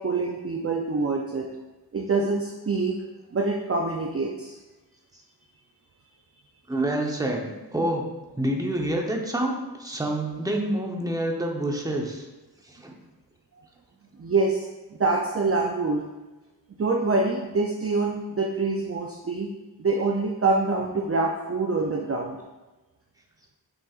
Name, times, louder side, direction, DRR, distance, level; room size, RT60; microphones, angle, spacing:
voice 1, 0.0-1.5 1.9-3.0 3.3-4.6 14.2-16.0 16.8-19.5 19.8-22.4, right 3 dB, 35° right, 0 dB, 0.6 m, -25 dB
voice 2, 6.7-8.0 8.4-12.2 12.7-13.0, right 1 dB, 10° right, 0 dB, 0.9 m, -27 dB
7.2 x 6.4 x 2.4 m, 1.1 s
wide cardioid pair, 120°, 43 cm